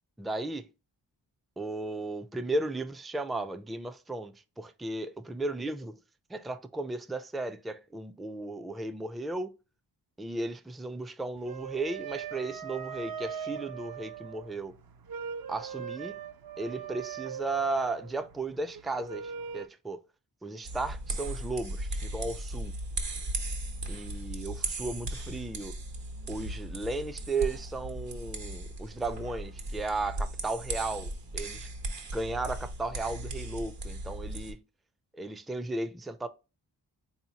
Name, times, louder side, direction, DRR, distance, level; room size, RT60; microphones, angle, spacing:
voice 1, 0.2-0.7 1.6-5.9 6.3-9.5 10.2-14.7 15.5-16.2 16.6-20.0 20.4-22.7 23.9-25.7 26.3-31.7 32.1-34.6 35.1-36.3, right 2 dB, ahead, 0.3 m, -35 dB
sound 1, 11.4-19.7, right 7 dB, 55° right, 0.5 m, -41 dB
sound 2, 20.6-34.5, right 2 dB, 75° right, 1.1 m, -37 dB
4.1 x 2.8 x 2.8 m
cardioid pair, 45°, 43 cm